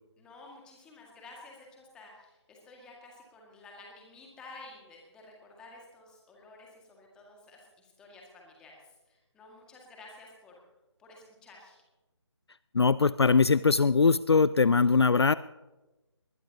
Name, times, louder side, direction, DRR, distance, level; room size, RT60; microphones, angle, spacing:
voice 1, 0.2-10.6 11.0-11.8, left 2 dB, 5° left, -1 dB, 2.0 m, -52 dB
voice 2, 12.7-15.3, left 4 dB, 60° left, 18 dB, 0.4 m, -22 dB
20.5 x 20.0 x 2.9 m, 1.1 s
figure-of-eight pair, 155°, 15 cm